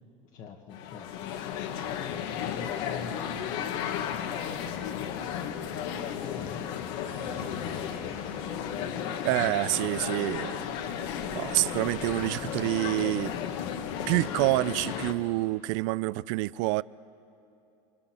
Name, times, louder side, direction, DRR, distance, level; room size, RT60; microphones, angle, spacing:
voice 1, 0.3-1.4 2.4-3.4 3.9-5.1 5.7-8.0 9.3-10.0, left 7 dB, 50° left, 1.3 m, -46 dB
sound 1, 0.7-15.1, left 8 dB, 70° left, 1.4 m, -34 dB
sound 2, 7.0-11.2, right 4 dB, 15° right, 2.1 m, -52 dB
voice 2, 9.2-10.7 11.1-13.3 14.1-16.8, right 21 dB, 70° right, 0.4 m, -27 dB
28.5 x 23.5 x 4.3 m
supercardioid pair, 130°, 16 cm